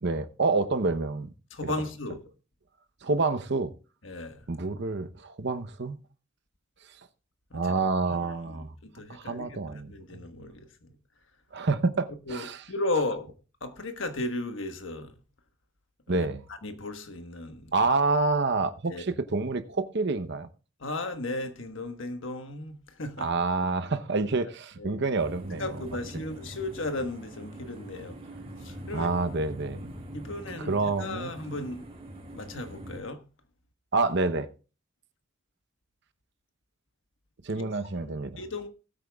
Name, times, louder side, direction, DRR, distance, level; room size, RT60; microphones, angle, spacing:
voice 1, 0.0-1.3 1.6-1.7 3.0-3.7 4.5-6.0 7.5-8.7 9.1-10.2 11.5-12.6 16.1-16.4 17.7-20.5 23.2-25.8 28.9-29.9 30.6-31.6 33.9-34.5 37.4-38.4, right 3 dB, 60° right, 0.8 m, -28 dB
voice 2, 1.5-2.2 4.0-4.4 7.5-7.7 8.5-9.6 9.9-11.0 12.3-13.3 13.6-15.2 16.1-16.3 16.6-17.7 18.9-19.0 20.8-23.3 24.8-25.0 25.6-28.2 28.6-29.1 30.1-31.8 32.3-33.2 37.5-37.6 37.9-38.1 38.4-38.7, left 2 dB, 65° left, 1.3 m, -35 dB
sound 1, 25.2-33.0, right 1 dB, 30° right, 4.1 m, -43 dB
19.5 x 8.6 x 2.3 m
head